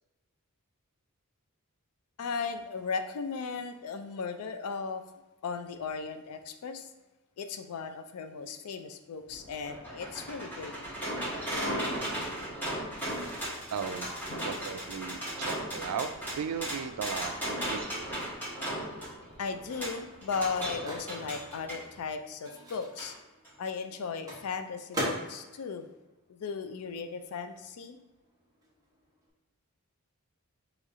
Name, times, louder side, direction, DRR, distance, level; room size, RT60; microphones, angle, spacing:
voice 1, 2.2-5.0 5.4-6.9 7.4-10.7 14.3-14.4 19.4-23.1 23.6-25.9 26.3-28.0, left 5 dB, 75° left, 8 dB, 0.4 m, -36 dB
sound 1, 9.3-21.8 23.0-23.1 23.4-23.5, right 1 dB, 10° left, 1.4 m, -36 dB
voice 2, 13.7-14.1 14.4-16.1 16.3-18.1, right 7 dB, 90° right, 9 dB, 0.4 m, -36 dB
Microwave oven, 20.0-27.1 27.4-29.3, equal, 15° right, 1.0 m, -42 dB
3.1 x 3.0 x 3.6 m, 1.1 s
head